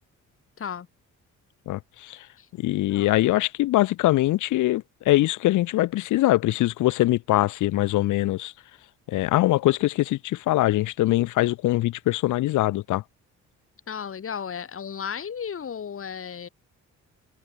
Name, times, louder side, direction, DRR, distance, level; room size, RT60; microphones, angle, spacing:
voice 1, 1.7-2.3 2.6-8.5 9.1-13.0, left 16 dB, 80° left, 0.8 m, -23 dB
voice 2, 13.9-16.5, left 7 dB, 45° left, 2.9 m, -34 dB
cardioid pair, 90°, 30 cm